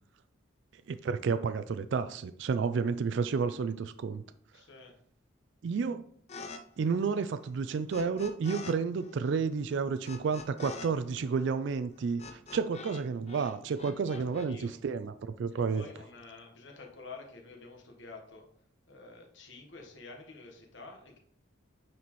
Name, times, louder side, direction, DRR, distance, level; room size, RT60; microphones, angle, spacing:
voice 1, 0.9-4.2 5.6-6.0 6.8-15.8, right 5 dB, 60° right, 0.3 m, -31 dB
voice 2, 4.5-4.9 14.1-14.7 15.7-18.5 18.9-21.2, left 3 dB, 65° left, 1.3 m, -49 dB
sound 1, 6.3-6.6 6.8-8.7 9.0-13.0 13.3-14.5, left 4 dB, 30° left, 0.5 m, -45 dB
9.3 x 4.2 x 3.1 m
head